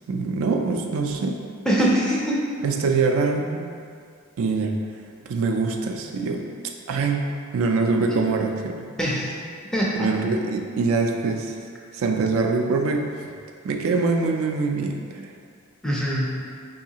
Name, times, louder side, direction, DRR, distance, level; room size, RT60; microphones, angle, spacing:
voice 1, 0.1-1.4 2.6-3.7 4.4-4.7 5.3-6.5 6.9-7.2 7.5-8.8 10.0-11.5 11.9-13.1 13.6-15.3, right 4 dB, 70° right, 3 dB, 0.3 m, -24 dB
voice 2, 1.6-2.5 9.0-9.3 9.7-10.1 15.8-16.4, equal, 5° left, -5 dB, 0.4 m, -23 dB
4.7 x 2.7 x 2.8 m, 2.2 s
head